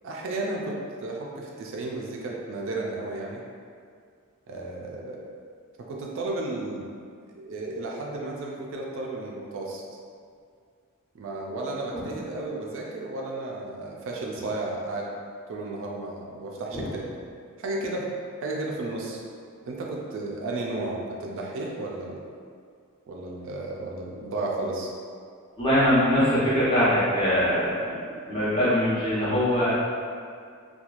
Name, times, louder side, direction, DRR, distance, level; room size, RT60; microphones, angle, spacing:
voice 1, 0.0-3.4 4.5-5.3 5.8-6.9 7.3-9.8 11.1-15.1 15.5-17.1 17.6-18.1 18.4-19.2 19.6-22.2 23.1-24.9, right 2 dB, 60° right, -2 dB, 0.4 m, -33 dB
voice 2, 25.6-29.7, equal, 25° left, -11 dB, 0.9 m, -23 dB
3.0 x 2.3 x 2.4 m, 2.2 s
head